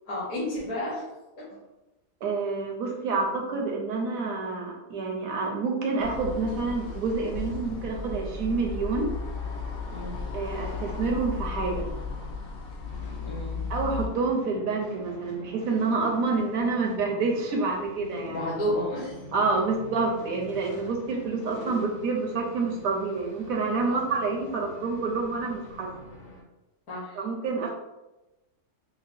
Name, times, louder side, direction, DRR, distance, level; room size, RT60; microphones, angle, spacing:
voice 1, 0.1-1.0 1.4-1.5 9.9-10.2 13.2-13.6 18.3-19.2 23.9-24.2 26.9-27.2, left 1 dB, 65° left, -10 dB, 1.6 m, -31 dB
voice 2, 2.2-9.1 10.3-11.9 13.7-18.4 19.3-25.9 27.1-27.7, right 4 dB, 70° right, 0 dB, 1.0 m, -28 dB
sound 1, 6.0-14.1, left 4 dB, 85° left, 1.2 m, -35 dB
sound 2, 12.8-26.4, left 1 dB, 50° left, 0.6 m, -46 dB
5.5 x 2.1 x 2.5 m, 1.0 s
omnidirectional pair, 1.7 m